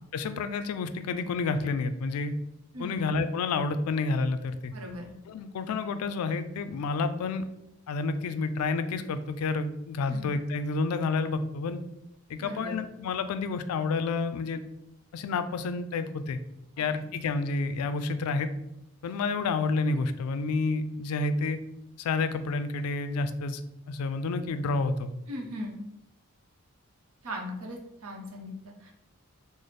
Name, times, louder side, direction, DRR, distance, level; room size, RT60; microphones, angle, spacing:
voice 1, 0.1-2.3 2.8-4.7 5.3-7.5 7.9-11.8 12.3-14.6 15.1-16.4 16.8-18.5 19.0-21.6 22.0-23.6 23.9-25.1, left 3 dB, 90° left, 11 dB, 0.3 m, -29 dB
voice 2, 2.7-3.1 4.7-5.1 10.1-10.3 12.4-12.7 25.3-25.8 27.2-28.9, left 1 dB, 85° right, 0 dB, 0.7 m, -38 dB
4.0 x 2.0 x 3.2 m, 0.84 s
head